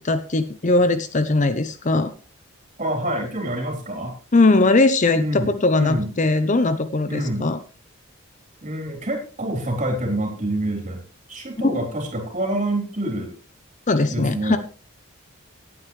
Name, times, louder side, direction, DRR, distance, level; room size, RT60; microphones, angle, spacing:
voice 1, 0.0-2.1 4.3-7.6 11.6-11.7 13.9-14.6, left 2 dB, 35° left, 11 dB, 0.7 m, -19 dB
voice 2, 2.8-4.1 5.1-6.1 7.1-7.5 8.6-11.0 11.3-13.3 14.1-14.6, right 1 dB, 35° right, 2 dB, 3.9 m, -27 dB
18.5 x 8.9 x 3.2 m, 0.35 s
head